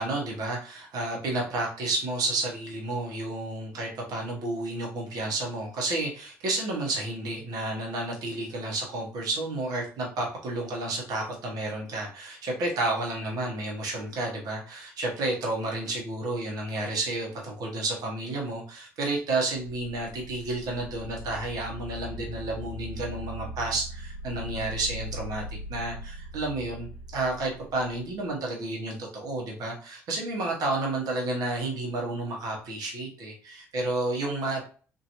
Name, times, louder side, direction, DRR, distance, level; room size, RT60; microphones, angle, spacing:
voice 1, 0.0-34.6, right 2 dB, 65° right, -1 dB, 1.3 m, -31 dB
sound 1, 19.6-28.3, equal, 60° left, 0.7 m, -40 dB
2.9 x 2.9 x 2.7 m, 0.40 s
hypercardioid pair, 55°, 7 cm